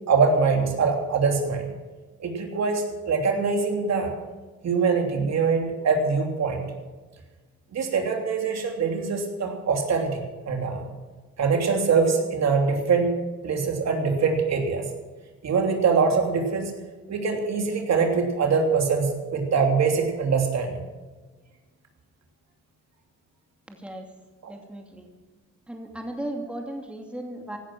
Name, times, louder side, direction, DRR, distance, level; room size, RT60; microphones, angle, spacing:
voice 1, 0.1-1.7 2.2-4.1 4.6-6.7 7.7-10.9 11.4-13.1 13.4-14.9 15.4-16.7 17.1-20.8 24.4-24.5, right 5 dB, 60° right, 3 dB, 3.2 m, -23 dB
voice 2, 23.7-24.1 24.5-25.1 25.7-27.6, right 1 dB, 5° right, 2 dB, 2.5 m, -36 dB
17.0 x 11.5 x 6.2 m, 1.3 s
cardioid pair, 90°, 30 cm